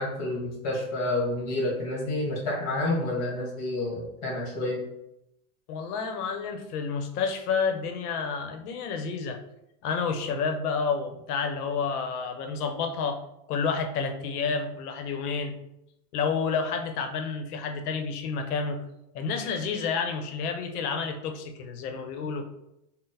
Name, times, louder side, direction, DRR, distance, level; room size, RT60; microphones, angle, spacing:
voice 1, 0.0-4.8, left 2 dB, 35° left, -2 dB, 1.2 m, -29 dB
voice 2, 5.7-9.4 9.8-13.2 13.5-15.5 16.1-18.8 19.1-22.4, left 5 dB, 75° left, 6 dB, 0.7 m, -30 dB
3.8 x 2.0 x 2.6 m, 0.82 s
supercardioid pair, 150°, 45 cm